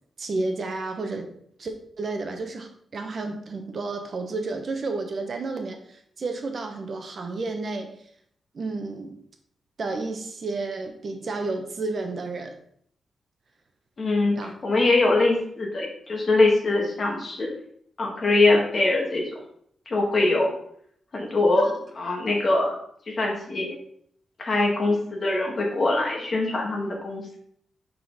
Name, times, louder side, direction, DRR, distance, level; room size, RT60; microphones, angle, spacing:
voice 1, 0.2-1.3 1.6-8.0 8.5-9.1 9.8-12.6 14.3-14.5 21.6-21.7, right 3 dB, 45° right, 5 dB, 0.8 m, -31 dB
voice 2, 14.0-14.4 14.6-17.5 18.0-19.2 19.8-20.5 21.1-21.7 21.9-22.7 23.1-23.6 24.4-27.4, left 2 dB, 35° left, 0 dB, 1.7 m, -22 dB
5.8 x 5.5 x 4.0 m, 0.65 s
wide cardioid pair, 160°, 0 cm